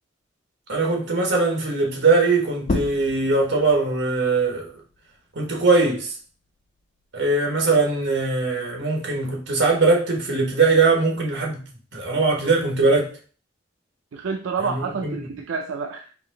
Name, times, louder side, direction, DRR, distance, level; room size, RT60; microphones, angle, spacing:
voice 1, 0.7-4.7 5.3-6.1 7.1-13.2 14.6-15.2, right 3 dB, 70° right, 1.3 m, -21 dB
sound 1, 2.6-7.8 8.2-10.0, left 2 dB, 40° left, 0.3 m, -35 dB
voice 2, 14.1-16.1, right 5 dB, 90° right, 0.4 m, -28 dB
4.5 x 2.7 x 3.8 m
head